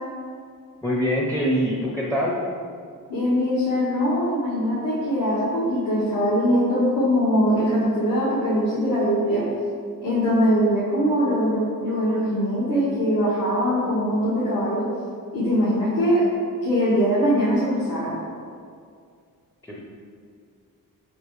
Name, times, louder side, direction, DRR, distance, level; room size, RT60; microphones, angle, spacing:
voice 1, 0.8-2.4 19.6-19.8, equal, 5° left, -4 dB, 0.7 m, -24 dB
voice 2, 3.1-9.4 10.0-14.8 15.3-16.3 16.6-18.2, equal, 65° left, -9 dB, 1.8 m, -22 dB
6.0 x 5.1 x 4.8 m, 2.2 s
wide cardioid pair, 155°, 35 cm